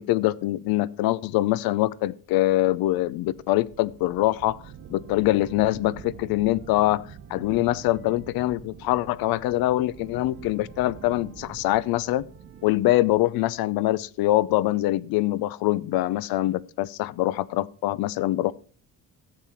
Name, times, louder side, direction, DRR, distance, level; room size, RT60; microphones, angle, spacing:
voice 1, 0.0-4.6 4.9-7.0 7.3-12.2 12.6-18.5, left 16 dB, 85° left, 0.6 m, -24 dB
sound 1, 2.2-14.3, right 8 dB, 35° right, 0.8 m, -46 dB
13.0 x 7.6 x 4.4 m
cardioid pair, 165°, 35 cm